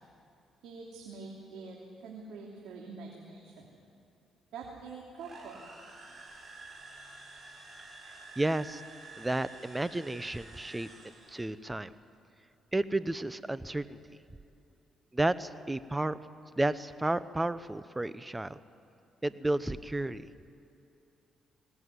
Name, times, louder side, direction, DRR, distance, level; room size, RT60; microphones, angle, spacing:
voice 1, 0.6-3.7 4.5-5.6, right 4 dB, 85° right, -2 dB, 3.1 m, -45 dB
sound 1, 5.2-11.5, right 3 dB, 35° right, 5.5 m, -50 dB
voice 2, 8.4-8.8 9.2-10.9 11.3-11.9 12.7-14.0 15.1-16.2 16.6-18.6 19.2-20.3, right 2 dB, 15° right, 15 dB, 0.8 m, -32 dB
21.0 x 18.0 x 9.6 m, 2.9 s
cardioid pair, 90°, 0 cm